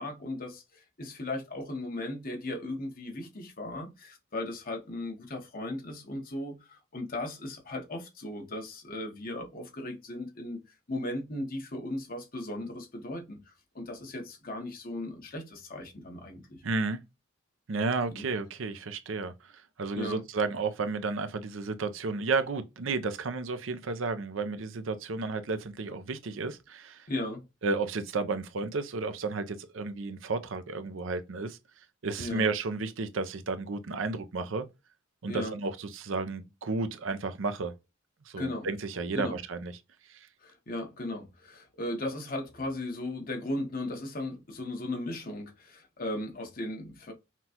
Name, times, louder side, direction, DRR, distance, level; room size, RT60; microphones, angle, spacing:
voice 1, 0.0-10.6 10.9-16.6 18.1-18.3 19.9-20.2 27.1-27.4 32.2-32.5 35.2-35.5 38.3-38.7 39.1-39.4 40.4-47.1, left 1 dB, 45° left, 1.1 m, -37 dB
voice 2, 16.6-17.0 17.7-27.1 27.6-31.6 32.0-34.7 35.2-37.7 38.3-39.7 40.1-40.3, right 3 dB, 65° right, 0.6 m, -32 dB
5.9 x 2.3 x 2.8 m
head